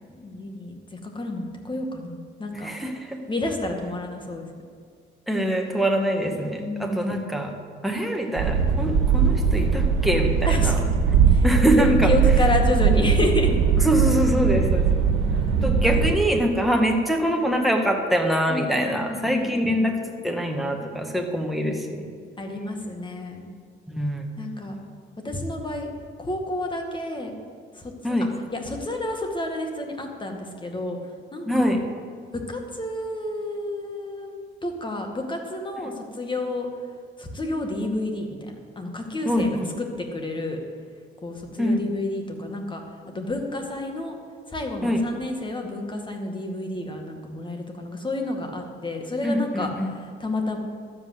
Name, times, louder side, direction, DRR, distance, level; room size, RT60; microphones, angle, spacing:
voice 1, 0.2-2.7 3.3-4.5 6.6-7.0 10.4-10.7 11.2-11.4 11.8-13.5 15.6-15.8 18.5-19.9 22.4-23.5 24.4-24.8 25.2-25.9 26.2-27.3 27.7-28.2 28.5-31.0 31.3-31.7 32.3-36.7 37.2-39.5 39.8-40.6 41.2-42.8 43.1-44.2 44.5-49.7 50.2-50.6, left 2 dB, 25° left, 3 dB, 2.2 m, -30 dB
voice 2, 2.5-3.2 5.3-7.5 7.8-10.8 11.4-12.1 13.8-14.9 15.6-20.0 20.2-22.1 23.9-24.2 28.0-28.3 31.4-31.8 39.3-39.7 41.6-41.8 44.8-45.0 49.2-49.9, equal, ahead, 1 dB, 1.9 m, -24 dB
sound 1, 8.4-16.1, right 6 dB, 80° right, 1.7 m, -20 dB
12.5 x 8.1 x 8.0 m, 2.2 s
cardioid pair, 90°, 20 cm